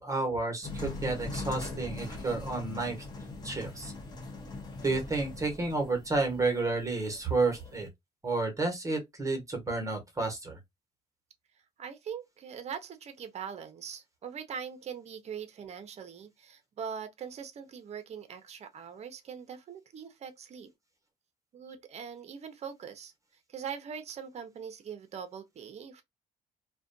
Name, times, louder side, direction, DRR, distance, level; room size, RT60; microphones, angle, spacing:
voice 1, 0.0-3.0 3.4-3.9 4.8-7.9 8.2-10.6, right 3 dB, 20° right, 1.0 m, -31 dB
sound 1, 0.6-7.9, left 3 dB, 25° left, 0.7 m, -41 dB
voice 2, 11.8-20.7 21.5-23.1 23.5-26.0, right 7 dB, 40° right, 0.6 m, -42 dB
2.5 x 2.2 x 2.5 m
cardioid pair, 110°, 17 cm